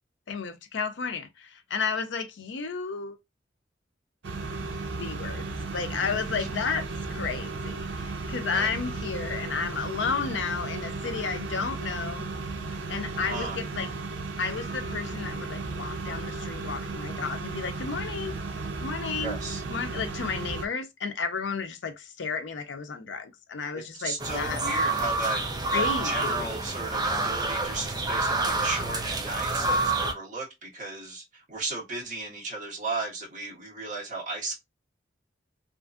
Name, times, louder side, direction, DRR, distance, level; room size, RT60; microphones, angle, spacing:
voice 1, 0.3-3.2 5.0-12.2 12.9-13.9 14.4-18.4 18.8-19.4 19.7-24.6 25.7-26.5, left 5 dB, 90° left, 0.5 m, -32 dB
sound 1, 4.2-20.7, right 3 dB, 90° right, 0.6 m, -35 dB
voice 2, 8.5-8.8 13.3-13.6 19.1-19.6 23.7-25.4 25.7-34.5, right 2 dB, 45° right, 1.4 m, -35 dB
sound 2, 24.2-30.1, right 2 dB, 25° right, 0.5 m, -28 dB
2.8 x 2.5 x 2.4 m
head